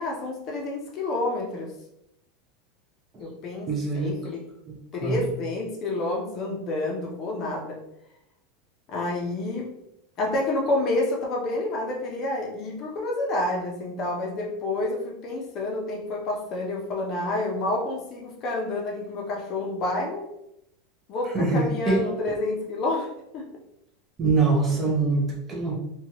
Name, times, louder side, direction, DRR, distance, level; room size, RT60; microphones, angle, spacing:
voice 1, 0.0-1.7 3.2-3.7 3.9-4.5 4.9-7.8 8.9-9.7 10.2-20.2 21.1-23.5, left 2 dB, 35° left, 0 dB, 0.5 m, -29 dB
voice 2, 3.7-4.1 4.7-5.3 21.2-22.1 24.2-25.8, right 3 dB, 20° right, -1 dB, 0.5 m, -24 dB
2.8 x 2.2 x 2.8 m, 0.82 s
supercardioid pair, 155°, 0 cm